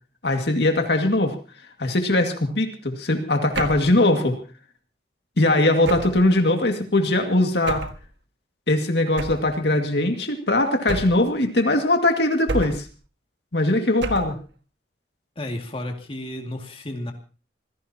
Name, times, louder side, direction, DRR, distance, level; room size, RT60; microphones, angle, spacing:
voice 1, 0.2-1.3 1.8-4.4 5.4-7.8 8.7-12.9 13.5-14.4, left 2 dB, 65° left, 4 dB, 2.1 m, -21 dB
sound 1, 3.5-4.0 5.8-6.3 7.7-8.0 9.2-9.5 10.9-11.3 12.5-13.0 14.0-14.4, right 3 dB, 85° right, 1.7 m, -29 dB
voice 2, 15.4-17.1, left 1 dB, 30° left, 3 dB, 2.3 m, -32 dB
26.0 x 16.5 x 2.9 m, 0.37 s
head